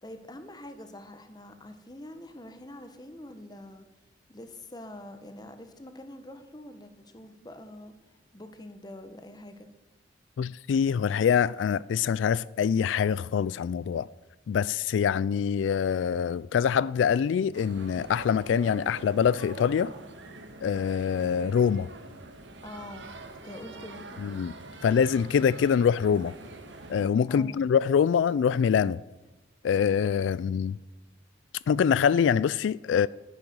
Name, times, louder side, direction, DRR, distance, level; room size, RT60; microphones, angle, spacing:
voice 1, 0.0-3.8 4.3-7.9 8.3-9.7 22.6-23.1 23.4-24.2 27.3-27.6, left 1 dB, 20° left, 1.2 m, -45 dB
voice 2, 10.4-14.1 14.5-19.9 20.6-21.9 24.2-24.5 24.8-26.3 26.9-29.0 29.6-30.8 31.7-33.1, left 7 dB, 80° left, 0.3 m, -24 dB
sound 1, 17.5-27.1, right 2 dB, 75° right, 1.7 m, -45 dB
11.5 x 10.0 x 6.2 m
head